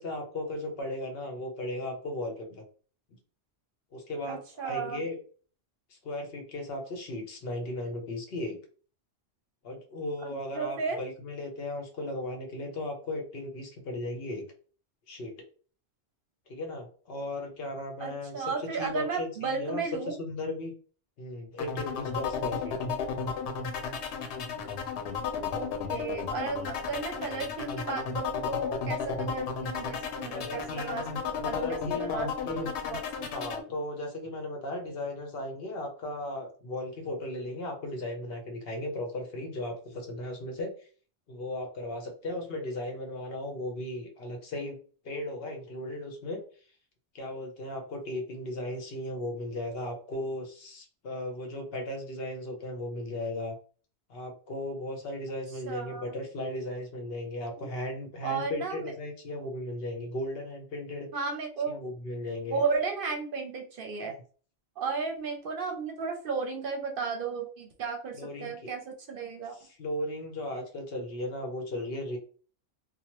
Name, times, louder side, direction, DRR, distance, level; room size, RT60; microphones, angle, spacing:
voice 1, 0.0-2.6 3.9-5.2 5.9-8.6 9.6-14.5 15.1-15.3 16.5-18.5 18.8-20.7 21.2-22.8 30.3-31.1 31.5-32.7 33.3-40.9 41.3-44.8 45.0-46.4 47.1-53.5 54.1-61.1 61.7-62.6 64.0-64.1 68.2-68.7 69.5-72.2, left 1 dB, 65° left, 3 dB, 0.9 m, -36 dB
voice 2, 4.3-5.0 10.2-11.0 18.0-20.2 25.5-32.6 32.9-33.0 55.7-56.0 57.6-57.7 58.2-58.9 61.1-61.8 62.5-64.2 64.8-69.6, right 4 dB, 60° right, 4 dB, 0.7 m, -34 dB
sound 1, 21.6-33.6, left 6 dB, 90° left, 0.9 m, -33 dB
2.9 x 2.1 x 2.9 m, 0.41 s
omnidirectional pair, 1.1 m